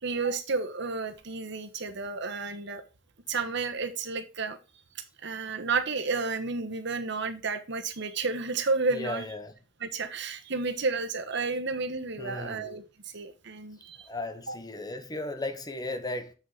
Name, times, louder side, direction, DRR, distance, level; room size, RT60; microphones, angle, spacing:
voice 1, 0.0-2.8 3.3-4.6 5.2-9.2 9.8-12.8 13.1-14.0 14.5-14.6, right 4 dB, 60° right, 1.3 m, -31 dB
voice 2, 8.9-9.6 12.2-12.7 14.1-16.3, left 2 dB, 20° left, 1.1 m, -36 dB
7.4 x 6.3 x 4.0 m
head